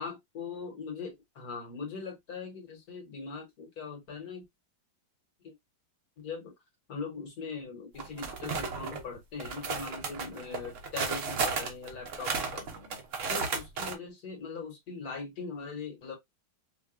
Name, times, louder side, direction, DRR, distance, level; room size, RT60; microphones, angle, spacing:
voice 1, 0.0-4.4 5.4-5.5 6.2-6.5 6.9-13.0 13.3-16.2, left 5 dB, 55° left, 1.5 m, -41 dB
sound 1, 8.0-9.0 9.4-13.9, right 5 dB, 55° right, 0.9 m, -34 dB
4.8 x 2.2 x 2.3 m
omnidirectional pair, 2.0 m